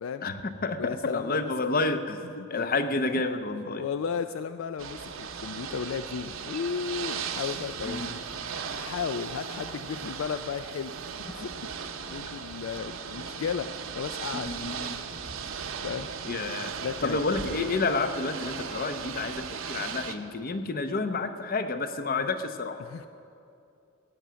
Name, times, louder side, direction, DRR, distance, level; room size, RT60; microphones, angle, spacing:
voice 1, 0.2-2.2 2.5-3.8 7.8-8.2 14.3-15.0 16.2-22.8, left 3 dB, 45° left, 9 dB, 0.7 m, -30 dB
voice 2, 0.8-1.5 2.5-2.6 3.7-8.0 8.8-10.9 11.3-11.7 12.1-14.5 15.8-16.1 16.8-17.7 22.8-23.1, left 6 dB, 65° left, 10 dB, 0.3 m, -34 dB
Ocean / Boat Water vehicle, 4.8-20.2, right 6 dB, 70° right, 0.8 m, -37 dB
17.0 x 6.3 x 9.1 m, 2.6 s
head